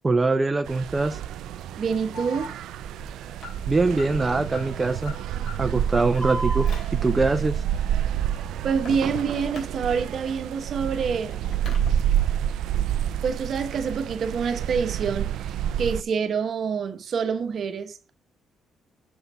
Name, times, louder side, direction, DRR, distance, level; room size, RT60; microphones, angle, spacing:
voice 1, 0.0-1.2 3.7-5.1 5.6-6.7 6.9-7.6, right 3 dB, 25° right, 0.6 m, -23 dB
sound 1, 0.6-16.0, right 10 dB, 85° right, 0.4 m, -28 dB
voice 2, 1.8-2.5 8.6-11.4 13.2-18.1, right 6 dB, 60° right, 1.1 m, -27 dB
Alarm, 2.1-10.3 10.7-11.9, equal, 60° left, 3.1 m, -39 dB
7.1 x 3.9 x 5.5 m
cardioid pair, 90°, 0 cm